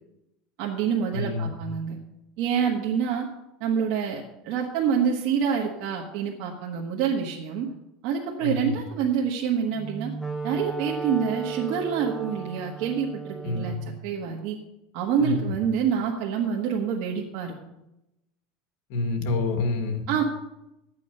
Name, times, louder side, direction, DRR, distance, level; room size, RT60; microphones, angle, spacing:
voice 1, 0.6-2.0 2.4-3.3 3.6-7.7 8.0-10.1 10.4-13.7 14.0-14.6 14.9-17.5 20.1-20.2, right 7 dB, 60° right, -1 dB, 1.4 m, -27 dB
voice 2, 1.1-1.5 8.4-8.8 13.4-13.7 15.2-15.5 18.9-20.0, left 3 dB, 60° left, 5 dB, 2.0 m, -27 dB
Wind instrument woodwind instrument, 9.7-13.9, right 5 dB, ahead, 1.4 m, -35 dB
11.5 x 8.5 x 5.5 m, 0.90 s
supercardioid pair, 160°, 0 cm